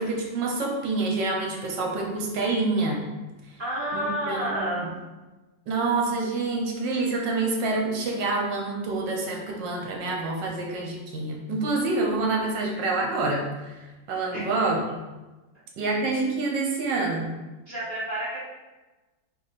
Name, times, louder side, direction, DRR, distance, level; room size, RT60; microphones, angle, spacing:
voice 1, 0.0-3.0 3.9-4.9 5.7-15.0 15.8-17.3, right 3 dB, 75° right, 0 dB, 1.5 m, -27 dB
voice 2, 3.6-4.9 14.3-14.4 17.7-18.4, right 1 dB, 30° right, -9 dB, 1.3 m, -29 dB
4.1 x 2.9 x 4.1 m, 1.1 s
omnidirectional pair, 2.0 m